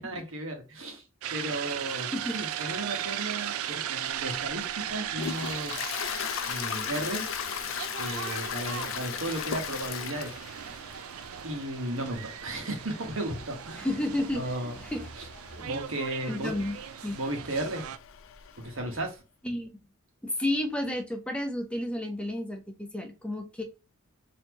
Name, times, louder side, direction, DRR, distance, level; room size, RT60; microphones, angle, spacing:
voice 1, 0.0-1.0 1.3-5.8 6.5-7.2 8.0-10.4 11.4-13.9 14.3-14.7 15.5-16.5 17.1-17.8 18.6-19.2, right 1 dB, 65° right, 3 dB, 1.4 m, -34 dB
sound 1, 1.2-18.0, right 10 dB, 85° right, 0.4 m, -38 dB
Toilet flush, 4.1-18.9, left 9 dB, 65° left, 0.4 m, -38 dB
voice 2, 13.8-15.1 15.5-15.7 16.3-16.8 17.0-17.2 19.4-19.8 20.2-23.6, left 1 dB, 5° left, 4 dB, 0.8 m, -32 dB
4.1 x 2.9 x 2.9 m, 0.29 s
head